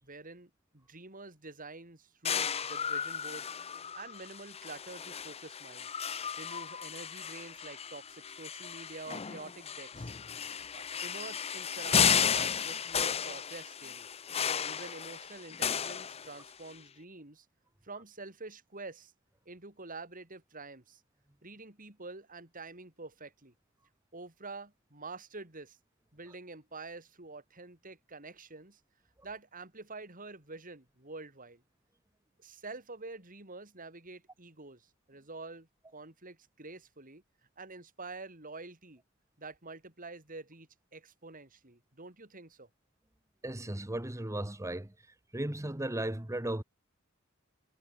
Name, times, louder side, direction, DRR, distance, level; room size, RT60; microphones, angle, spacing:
voice 1, 0.0-3.5 3.9-5.9 6.4-10.1 10.6-14.1 14.6-17.4 17.8-19.1 19.4-21.0 21.4-23.5 24.1-25.8 26.1-28.8 29.2-31.6 32.4-37.2 37.6-39.0 39.4-42.7, right 3 dB, 40° right, 5.1 m, -47 dB
sound 1, 2.2-16.7, left 7 dB, 30° left, 0.6 m, -34 dB
voice 2, 43.4-44.9 45.3-46.6, right 1 dB, 15° right, 1.1 m, -35 dB
head